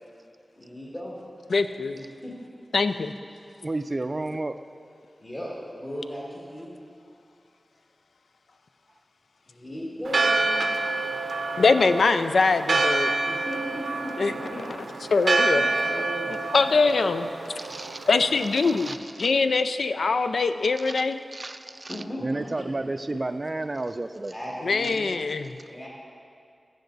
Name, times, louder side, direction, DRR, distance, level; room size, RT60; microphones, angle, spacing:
voice 1, 0.6-1.2 1.9-2.3 5.2-6.7 9.5-10.7 13.3-14.9 15.5-17.2 21.9-22.6 24.3-25.3 25.7-25.9, equal, 35° left, -6 dB, 1.9 m, -37 dB
voice 2, 1.5-2.0 2.7-3.1 11.6-13.1 14.2-14.3 15.1-15.6 16.5-17.3 18.1-21.2 24.6-25.6, left 4 dB, 90° left, 10 dB, 0.3 m, -23 dB
voice 3, 3.6-4.6 17.6-18.1 18.8-19.3 20.8-21.0 21.3-24.3 24.8-25.0, right 2 dB, 40° right, 10 dB, 0.4 m, -32 dB
Church bell, 10.0-18.9, right 3 dB, 85° right, 0.6 m, -27 dB
16.0 x 6.4 x 4.0 m, 2.4 s
wide cardioid pair, 75°, 0 cm